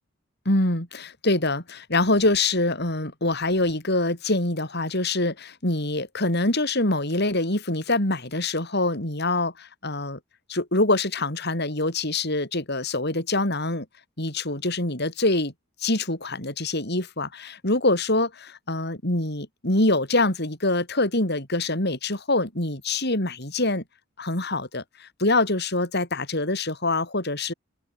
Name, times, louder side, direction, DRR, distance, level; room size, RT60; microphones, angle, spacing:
voice 1, 0.5-10.2 10.5-13.9 14.2-15.5 15.8-23.8 24.2-27.5, left 2 dB, 55° left, 6.1 m, -25 dB
open air
head